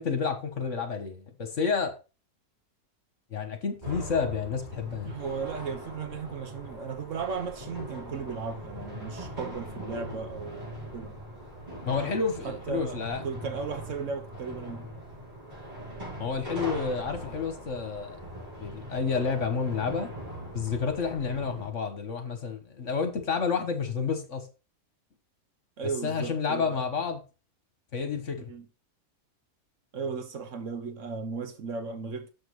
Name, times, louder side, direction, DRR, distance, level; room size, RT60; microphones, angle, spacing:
voice 1, 0.0-2.0 3.3-5.1 11.9-13.2 16.2-18.2 18.6-20.1 20.5-24.5 26.0-27.2 27.9-28.5, left 5 dB, 55° left, 1.6 m, -30 dB
sound 1, 3.8-21.7, equal, 30° right, 4.9 m, -41 dB
voice 2, 5.1-11.1 12.4-14.9 25.8-26.8 28.4-28.7 29.9-32.3, right 5 dB, 60° right, 1.2 m, -36 dB
6.9 x 6.3 x 4.7 m
omnidirectional pair, 1.6 m